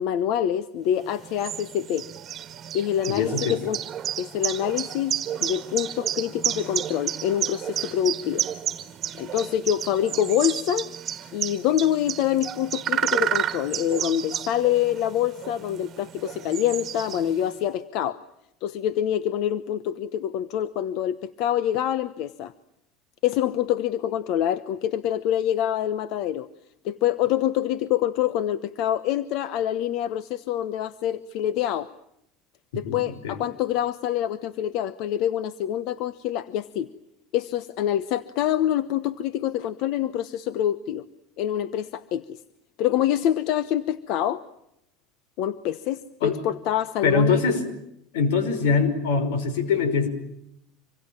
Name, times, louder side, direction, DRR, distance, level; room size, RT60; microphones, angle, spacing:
voice 1, 0.0-2.1 2.7-3.8 4.2-8.4 9.2-10.9 11.3-18.2 18.6-22.5 23.2-26.5 26.8-31.9 32.7-36.9 37.3-41.0 41.4-42.4 42.8-44.4 45.4-47.4, left 11 dB, 60° left, 15 dB, 1.0 m, -26 dB
sound 1, 1.0-17.6, right 10 dB, 35° right, 1.8 m, -31 dB
voice 2, 3.1-3.6 32.8-33.0 33.2-33.4 46.2-46.4 47.0-47.6 48.1-50.1, left 5 dB, 90° left, 11 dB, 5.6 m, -23 dB
26.5 x 23.0 x 9.0 m, 0.79 s
supercardioid pair, 130°, 0 cm